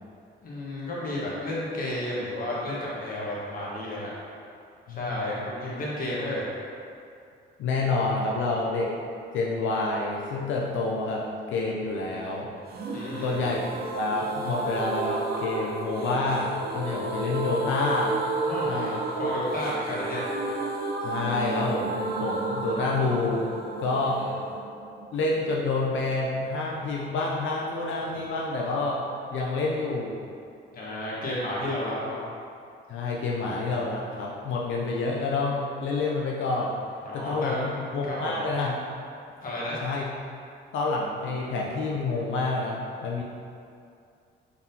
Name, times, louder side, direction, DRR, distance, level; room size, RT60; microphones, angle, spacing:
voice 1, 0.4-4.1 4.9-6.5 12.9-13.4 18.5-18.7 19.1-20.2 24.2-24.3 30.7-32.3 37.0-37.8 38.0-38.4 39.4-39.8, left 1 dB, 45° left, -7 dB, 1.2 m, -32 dB
voice 2, 4.9-5.2 7.6-8.9 9.3-12.5 13.2-18.1 18.7-19.0 21.0-23.5 23.8-24.2 25.1-29.0 29.3-30.1 32.9-36.8 37.1-38.8 39.8-40.1 40.7-43.2, left 3 dB, 75° left, -3 dB, 0.5 m, -28 dB
sound 1, 12.7-26.3 26.6-26.7 26.9-27.0, right 2 dB, 50° right, 0.5 m, -32 dB
3.9 x 3.6 x 2.8 m, 2.5 s
cardioid pair, 90°, 20 cm